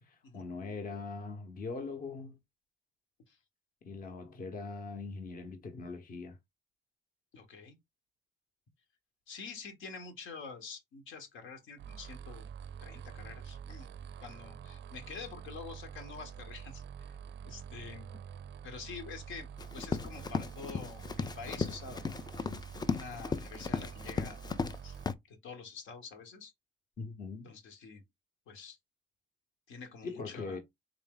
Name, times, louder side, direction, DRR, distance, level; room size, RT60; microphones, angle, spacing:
voice 1, 0.0-2.4 3.8-6.4 27.0-27.5 30.0-30.6, left 4 dB, 45° left, 0.9 m, -41 dB
voice 2, 7.3-7.8 9.3-12.5 12.8-13.9 14.2-17.2 17.4-18.2 18.6-22.0 22.9-24.4 24.8-25.0 25.3-26.5 27.4-28.0 28.5-28.8 29.7-30.6, left 5 dB, 85° left, 1.2 m, -47 dB
sound 1, 11.8-25.0, right 8 dB, 65° right, 0.4 m, -47 dB
Run, 19.6-24.8 25.0-25.1, left 5 dB, 20° left, 0.4 m, -36 dB
3.8 x 2.6 x 3.7 m
cardioid pair, 90°, 20 cm